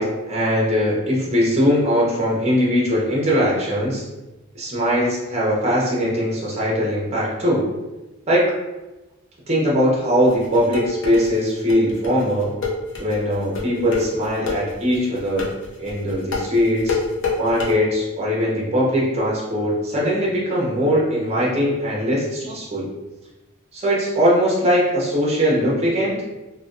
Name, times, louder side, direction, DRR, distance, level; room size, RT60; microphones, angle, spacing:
voice 1, 0.0-4.0 4.5-7.7 8.3-8.4 9.5-12.5 13.0-15.5 15.8-17.0 17.4-22.9 23.7-26.2, equal, 30° right, -4 dB, 0.7 m, -20 dB
sound 1, 10.3-17.7, left 4 dB, 60° left, 0.6 m, -26 dB
3.2 x 2.2 x 2.5 m, 1.1 s
head